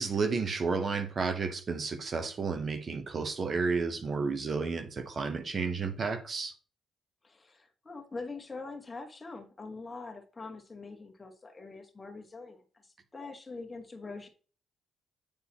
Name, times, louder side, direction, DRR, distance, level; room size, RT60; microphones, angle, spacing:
voice 1, 0.0-6.5, right 4 dB, 45° right, 0.7 m, -32 dB
voice 2, 7.2-14.3, left 3 dB, 25° left, 1.1 m, -44 dB
8.5 x 4.0 x 2.8 m
cardioid pair, 90°, 0 cm